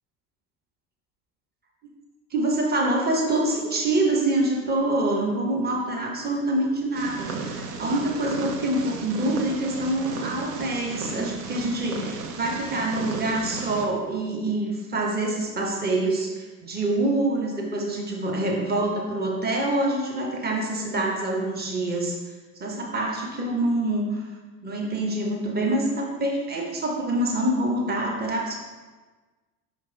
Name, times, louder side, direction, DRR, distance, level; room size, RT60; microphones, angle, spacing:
voice 1, 2.3-22.1 22.6-24.3 24.6-28.6, right 1 dB, 20° right, -1 dB, 1.3 m, -26 dB
Purr, 6.9-13.8, right 4 dB, 60° right, 1.0 m, -34 dB
5.3 x 5.2 x 4.0 m, 1.3 s
figure-of-eight pair, 70°, 50 cm